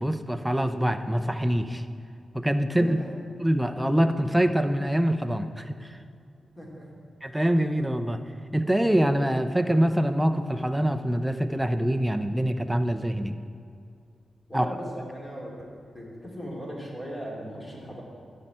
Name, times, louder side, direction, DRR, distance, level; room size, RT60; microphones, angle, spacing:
voice 1, 0.0-1.8 2.3-3.0 3.4-5.9 7.2-8.2 8.5-13.3 14.5-14.7, equal, 5° right, 8 dB, 0.6 m, -24 dB
voice 2, 6.6-6.9 14.5-15.5 15.9-18.0, equal, 15° left, -3 dB, 2.7 m, -38 dB
11.5 x 5.5 x 8.7 m, 2.4 s
wide cardioid pair, 120°, 0 cm